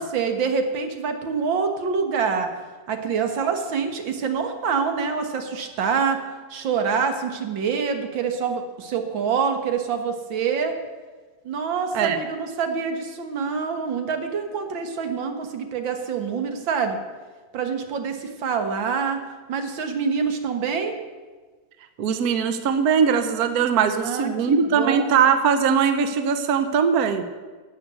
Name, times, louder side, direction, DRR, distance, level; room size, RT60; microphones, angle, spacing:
voice 1, 0.0-2.5 2.9-6.2 6.5-10.8 11.4-17.0 17.5-19.2 19.5-21.0 24.0-25.2, right 6 dB, 85° right, 6 dB, 2.1 m, -26 dB
voice 2, 22.0-27.4, right 6 dB, 60° right, 9 dB, 1.2 m, -21 dB
12.5 x 7.9 x 8.0 m, 1.4 s
omnidirectional pair, 2.0 m